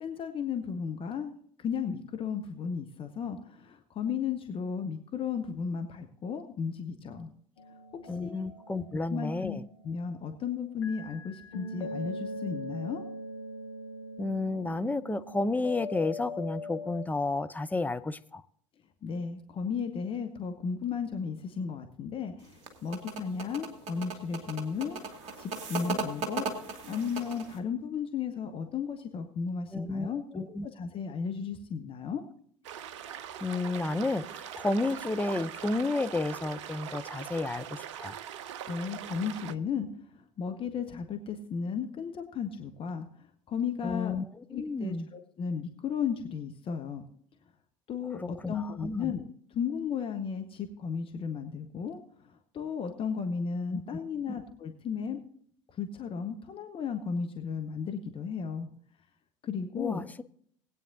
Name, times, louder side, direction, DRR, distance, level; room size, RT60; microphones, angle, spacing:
voice 1, 0.0-1.3 1.6-7.3 8.2-8.4 9.1-13.0 19.0-25.0 25.4-30.2 30.5-32.2 38.7-39.9 40.4-43.1 43.5-44.2 44.5-47.1 47.9-49.2 49.5-52.0 52.3-55.2 55.8-58.7 59.4-60.0, left 6 dB, 35° left, 5 dB, 1.2 m, -34 dB
sound 1, 7.6-10.3 10.8-17.1, left 1 dB, 70° left, 1.3 m, -41 dB
voice 2, 8.1-9.6 14.2-18.4 29.7-30.7 33.0-38.1 43.8-44.2 44.5-45.1 48.2-49.1 53.7-53.8 59.8-60.2, left 2 dB, 10° left, 10 dB, 0.6 m, -32 dB
sound 2, 22.4-27.6, right 3 dB, 45° right, 2.3 m, -37 dB
sound 3, 32.6-39.5, right 9 dB, 65° right, 0.6 m, -41 dB
19.5 x 9.1 x 2.7 m, 0.62 s
figure-of-eight pair, 70°, 16 cm